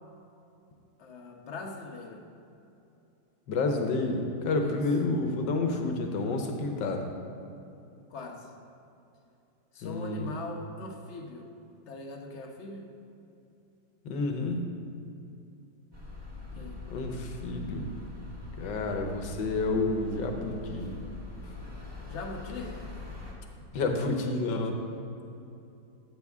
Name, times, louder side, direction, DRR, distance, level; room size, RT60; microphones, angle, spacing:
voice 1, 1.0-2.3 4.6-4.9 8.1-8.5 9.7-11.5 11.9-12.9 16.5-16.8 22.1-23.0, left 3 dB, 45° left, 1 dB, 1.0 m, -41 dB
voice 2, 3.5-7.1 9.8-10.3 14.0-14.6 16.9-17.9 18.6-20.9 23.7-24.7, left 3 dB, 70° left, 4 dB, 1.5 m, -29 dB
sound 1, 15.9-23.3, left 3 dB, 15° right, 1.5 m, -43 dB
13.0 x 8.1 x 3.6 m, 2.7 s
omnidirectional pair, 2.1 m